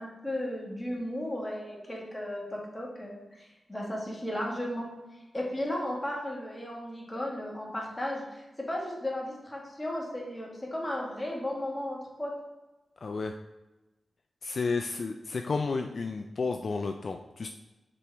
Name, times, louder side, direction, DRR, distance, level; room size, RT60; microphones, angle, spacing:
voice 1, 0.0-4.9 5.3-12.3, left 1 dB, 15° left, -3 dB, 1.9 m, -35 dB
voice 2, 13.0-13.3 14.4-17.5, left 4 dB, 55° left, 5 dB, 0.4 m, -32 dB
6.8 x 3.0 x 4.6 m, 1.0 s
cardioid pair, 75°, 0 cm